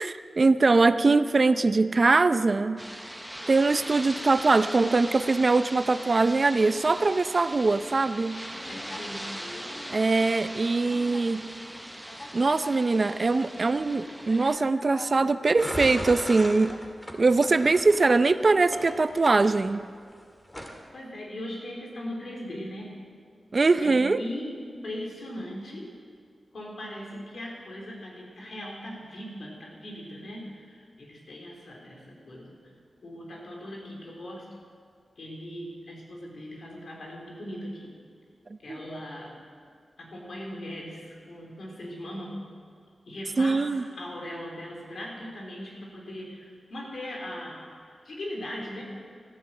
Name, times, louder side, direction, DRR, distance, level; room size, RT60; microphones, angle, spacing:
voice 1, 0.0-2.8 3.5-8.4 9.9-11.4 12.3-16.7 17.1-19.8 23.5-24.2 38.7-38.8 43.4-43.8, right 3 dB, 50° right, 12 dB, 0.6 m, -22 dB
sound 1, 2.8-14.6, equal, 5° right, 0.7 m, -40 dB
sound 2, 8.1-16.8, left 2 dB, 45° left, 1.7 m, -46 dB
voice 2, 8.5-9.4 20.9-23.0 23.5-25.9 26.5-32.6 33.0-34.5 35.2-37.9 38.6-39.4 40.0-42.4 43.1-48.8, left 1 dB, 70° left, -1 dB, 3.9 m, -39 dB
sound 3, 15.6-20.1 20.5-20.8, equal, 15° left, 2.1 m, -37 dB
15.0 x 10.5 x 7.8 m, 2.1 s
cardioid pair, 60°, 0 cm